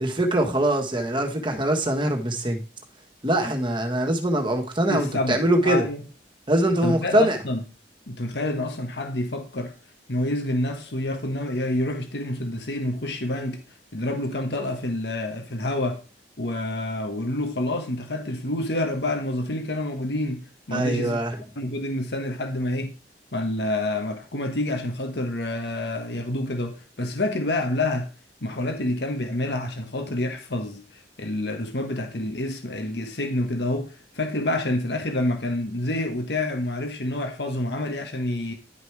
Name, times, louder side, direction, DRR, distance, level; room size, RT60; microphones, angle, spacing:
voice 1, 0.0-2.6 3.2-5.8 6.5-7.4 20.7-21.4, right 1 dB, 30° right, 1.6 m, -23 dB
voice 2, 4.9-6.0 6.8-7.6 8.1-9.7 10.1-13.6 13.9-16.0 16.4-21.2 21.5-22.9 23.3-28.1 28.4-30.8 31.2-38.5, left 1 dB, 70° left, 1.4 m, -28 dB
11.0 x 5.2 x 4.7 m
head